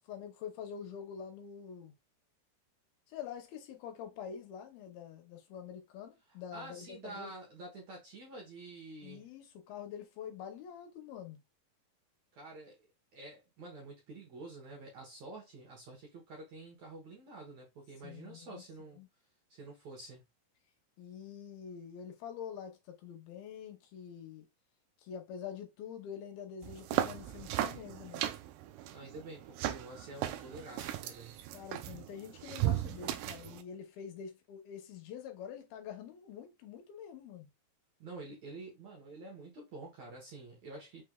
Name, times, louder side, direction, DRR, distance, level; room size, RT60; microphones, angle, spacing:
voice 1, 0.1-1.9 3.1-7.3 9.0-11.4 18.0-18.6 19.0-19.1 21.0-24.5 25.0-28.3 31.5-37.5, left 8 dB, 75° left, 2.6 m, -46 dB
voice 2, 6.3-9.3 12.3-12.8 13.1-19.0 19.5-20.2 28.9-31.4 38.0-41.0, right 2 dB, 65° right, 1.9 m, -48 dB
sound 1, 26.6-33.6, right 13 dB, 90° right, 1.9 m, -37 dB
6.2 x 3.3 x 2.3 m
omnidirectional pair, 4.5 m